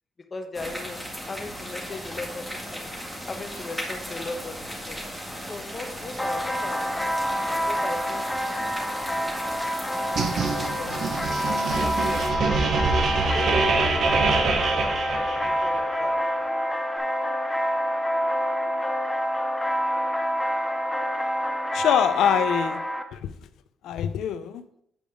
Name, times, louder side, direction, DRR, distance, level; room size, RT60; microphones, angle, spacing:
voice 1, 0.3-2.8 3.3-4.6 4.9-5.0 5.5-6.9 7.6-8.3 10.1-12.5 13.2-14.0 14.4-16.1, left 3 dB, 35° left, 6 dB, 1.1 m, -38 dB
sound 1, 0.5-12.3, equal, 5° right, 1.9 m, -36 dB
sound 2, 6.2-23.0, equal, 10° left, 0.8 m, -27 dB
sound 3, 10.2-15.8, right 4 dB, 60° right, 1.2 m, -25 dB
voice 2, 21.7-22.8 23.1-23.3 23.8-24.6, left 9 dB, 80° left, 12 dB, 0.5 m, -24 dB
8.7 x 5.1 x 3.8 m, 0.72 s
cardioid pair, 90°, 0 cm